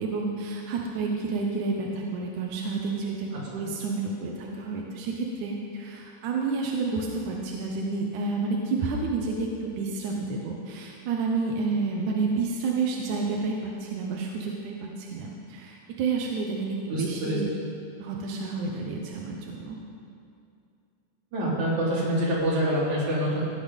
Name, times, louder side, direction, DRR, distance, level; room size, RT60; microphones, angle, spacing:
voice 1, 0.0-17.5 18.0-19.8, right 4 dB, 70° right, -1 dB, 2.0 m, -30 dB
voice 2, 16.9-17.4 21.3-23.4, equal, 45° right, -6 dB, 4.3 m, -26 dB
17.0 x 10.5 x 5.4 m, 2.5 s
omnidirectional pair, 4.8 m